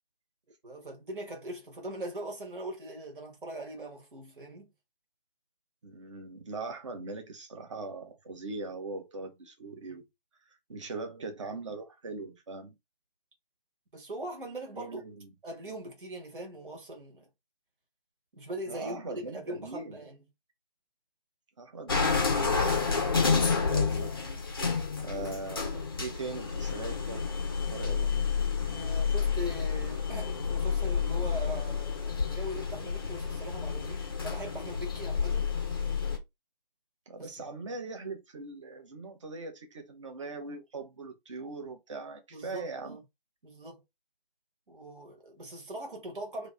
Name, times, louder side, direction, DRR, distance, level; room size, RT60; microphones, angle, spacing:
voice 1, 0.6-4.7 9.9-10.0 13.9-15.0 15.4-17.2 18.3-20.2 28.7-35.5 37.2-37.4 42.3-43.0 43.4-43.8 44.7-46.5, right 1 dB, 60° right, 1.5 m, -41 dB
voice 2, 5.8-10.0 10.7-12.8 14.7-15.3 18.7-20.0 21.6-22.9 23.7-24.2 25.0-28.2 37.1-43.0, right 3 dB, 30° right, 0.8 m, -40 dB
sound 1, 21.9-36.2, left 5 dB, 25° left, 0.6 m, -30 dB
3.1 x 2.7 x 3.2 m
figure-of-eight pair, 155°, 29 cm